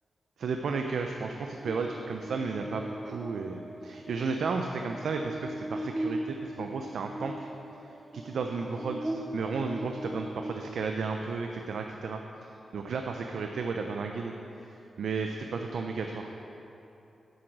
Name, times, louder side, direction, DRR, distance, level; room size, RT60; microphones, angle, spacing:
voice 1, 0.4-7.5 8.1-12.2 12.7-14.3 14.7-16.3, right 4 dB, 75° right, 4 dB, 0.5 m, -33 dB
Buzz, 1.6-11.1, right 1 dB, 10° right, 0.6 m, -39 dB
8.1 x 7.8 x 6.0 m, 2.9 s
wide cardioid pair, 170°, 0 cm